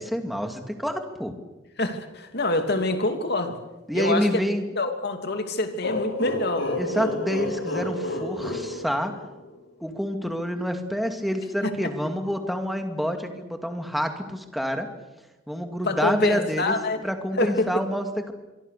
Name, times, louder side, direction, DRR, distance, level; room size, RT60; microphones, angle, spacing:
voice 1, 0.0-1.3 3.9-4.6 6.8-9.1 9.8-14.9 15.5-16.7 17.0-18.3, equal, ahead, 5 dB, 2.4 m, -27 dB
voice 2, 1.8-3.6 3.9-4.3 4.8-6.8 15.8-17.0 17.4-17.7, left 2 dB, 55° left, 6 dB, 2.8 m, -26 dB
sound 1, 5.8-9.5, left 2 dB, 80° left, 4.1 m, -30 dB
26.0 x 23.5 x 6.8 m, 1.1 s
head